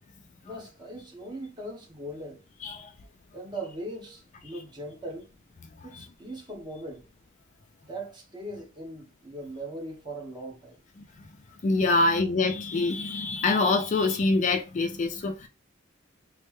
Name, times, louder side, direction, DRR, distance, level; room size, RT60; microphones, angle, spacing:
voice 1, 0.4-2.4 3.3-5.3 5.8-7.1 7.8-10.8 11.9-12.1, right 1 dB, 25° right, 1.1 m, -40 dB
voice 2, 11.6-15.5, left 3 dB, 40° left, 0.4 m, -25 dB
3.1 x 2.1 x 3.1 m
head